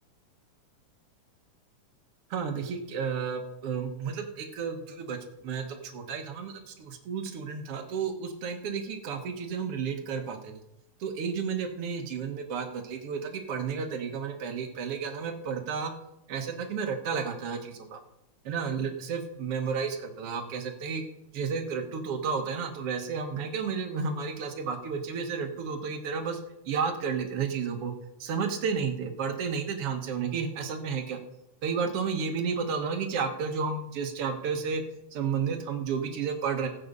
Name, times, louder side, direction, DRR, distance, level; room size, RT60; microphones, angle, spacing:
voice 1, 2.3-5.2 5.4-10.6 11.0-15.9 16.3-18.0 18.5-21.0 21.3-26.4 26.7-27.9 28.2-31.2 31.6-34.8 35.1-36.7, right 6 dB, 60° right, 5 dB, 1.8 m, -32 dB
15.0 x 8.1 x 5.4 m, 0.87 s
omnidirectional pair, 3.6 m